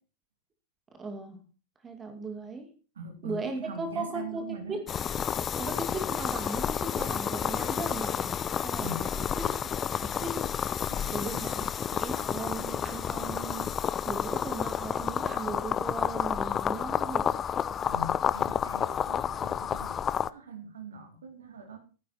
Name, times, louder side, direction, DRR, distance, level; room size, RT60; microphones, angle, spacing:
voice 1, 0.9-1.4 1.8-2.7 3.2-4.8 5.6-9.7 10.0-10.5 11.1-13.7 14.1-17.4, right 3 dB, 20° right, 7 dB, 2.3 m, -37 dB
voice 2, 3.0-4.8 8.8-9.0 10.9-11.5 17.9-21.8, right 2 dB, 65° right, 6 dB, 2.7 m, -42 dB
sound 1, 4.9-20.3, left 8 dB, 25° left, 0.5 m, -30 dB
15.0 x 9.6 x 4.3 m, 0.35 s
figure-of-eight pair, 90°, 0 cm